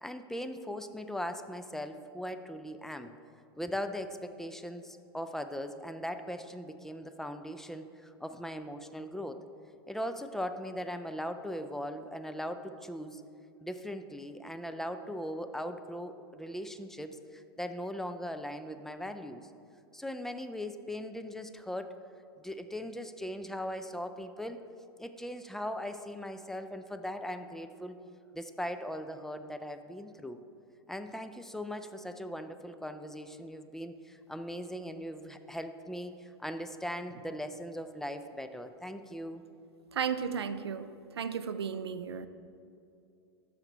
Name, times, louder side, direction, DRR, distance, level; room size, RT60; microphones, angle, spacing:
voice 1, 0.0-3.1 3.6-9.5 9.9-13.2 13.6-19.4 19.9-21.9 22.4-24.6 25.0-28.0 28.3-30.4 30.9-39.4, equal, 5° left, 8 dB, 0.4 m, -39 dB
voice 2, 39.9-40.9 41.2-42.3, right 7 dB, 80° right, 12 dB, 0.4 m, -34 dB
12.5 x 4.3 x 3.9 m, 2.6 s
hypercardioid pair, 95°, 13 cm